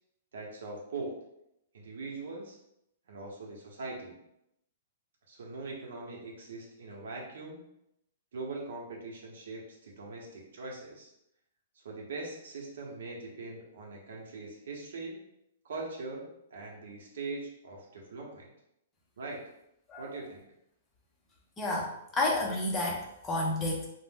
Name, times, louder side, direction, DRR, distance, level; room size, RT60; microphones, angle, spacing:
voice 1, 0.3-1.2 1.7-2.6 3.1-4.2 5.3-7.6 8.3-11.1 11.7-15.2 15.6-18.5 19.2-19.4 20.0-20.4, right 3 dB, 75° right, -1 dB, 0.8 m, -41 dB
voice 2, 21.6-23.8, left 2 dB, 15° left, -3 dB, 0.5 m, -30 dB
2.5 x 2.1 x 3.5 m, 0.82 s
hypercardioid pair, 165°, 0 cm